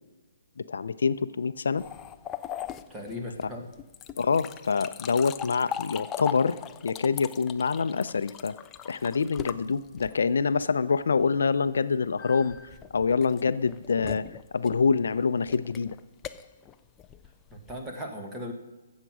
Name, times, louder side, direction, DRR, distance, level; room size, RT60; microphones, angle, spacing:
voice 1, 0.6-1.8 4.2-6.6 6.8-8.6 8.8-14.3 14.5-15.9, left 5 dB, 75° left, 14 dB, 0.5 m, -26 dB
sound 1, 1.8-10.4 12.2-17.9, left 10 dB, 10° left, 0.4 m, -40 dB
voice 2, 2.9-3.6 17.5-18.5, left 1 dB, 10° right, 1 dB, 1.5 m, -37 dB
15.0 x 7.4 x 6.2 m, 1.2 s
hypercardioid pair, 170°, 0 cm